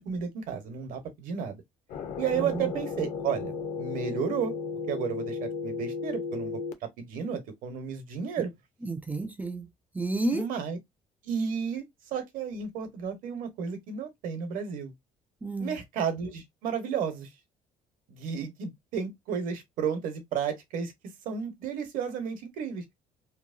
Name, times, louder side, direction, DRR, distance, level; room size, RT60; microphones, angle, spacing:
voice 1, 0.0-1.6 2.2-3.5 3.8-4.5 4.9-8.5 10.3-10.8 11.2-11.8 12.1-14.9 15.6-17.3 18.1-20.9 21.2-22.8, right 7 dB, 75° right, 0.9 m, -32 dB
sound 1, 1.9-6.7, left 5 dB, 60° left, 0.6 m, -34 dB
voice 2, 2.3-2.7 3.4-3.5 8.8-9.7 9.9-10.5 15.4-15.8, right 2 dB, 10° right, 0.4 m, -31 dB
2.9 x 2.1 x 2.4 m
cardioid pair, 125°, 14 cm